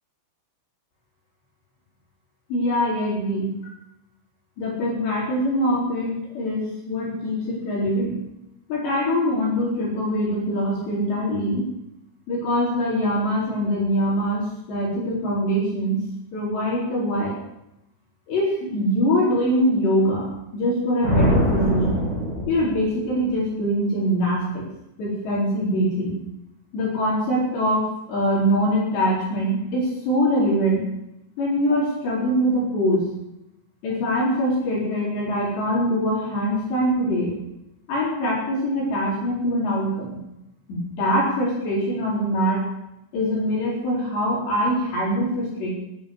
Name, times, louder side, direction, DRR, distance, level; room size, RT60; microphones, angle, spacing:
voice 1, 2.5-3.5 4.6-8.2 8.7-11.7 12.3-16.0 16.3-17.4 18.3-22.0 22.5-24.6 25.0-26.1 26.7-30.9 31.4-33.1 33.8-37.4 37.9-40.2 40.7-42.7 43.1-45.7, equal, 60° left, -4 dB, 6.0 m, -23 dB
sound 1, 21.0-23.3, equal, 10° left, 6.5 m, -23 dB
15.5 x 10.0 x 8.2 m, 0.84 s
omnidirectional pair, 5.9 m